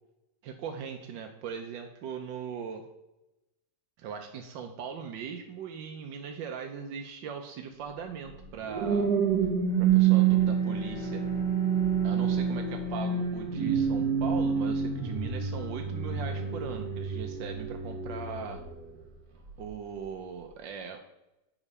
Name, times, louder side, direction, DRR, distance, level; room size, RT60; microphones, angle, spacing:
voice 1, 0.4-2.8 4.0-9.1 9.8-11.2 12.0-18.6 19.6-21.0, right 7 dB, 90° right, 4 dB, 1.5 m, -39 dB
sound 1, 8.3-18.9 19.4-19.7, right 7 dB, 60° right, 1.5 m, -27 dB
Bowed string instrument, 9.5-14.9, right 1 dB, 35° right, 1.4 m, -43 dB
8.6 x 5.0 x 5.4 m, 0.93 s
omnidirectional pair, 2.0 m